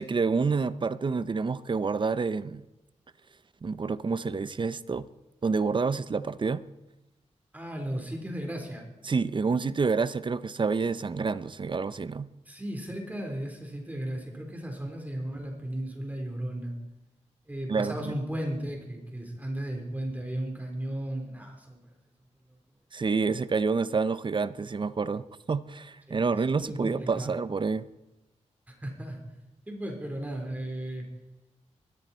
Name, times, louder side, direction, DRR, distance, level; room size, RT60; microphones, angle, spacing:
voice 1, 0.0-2.7 3.6-5.1 5.4-6.6 9.1-12.3 17.7-18.1 22.9-27.9, right 4 dB, 40° right, 0.6 m, -28 dB
voice 2, 7.5-8.9 12.5-16.7 17.5-21.8 26.1-27.3 28.7-29.2 29.7-31.1, right 1 dB, 15° right, 3.9 m, -35 dB
20.0 x 13.5 x 4.4 m
wide cardioid pair, 85°, 12 cm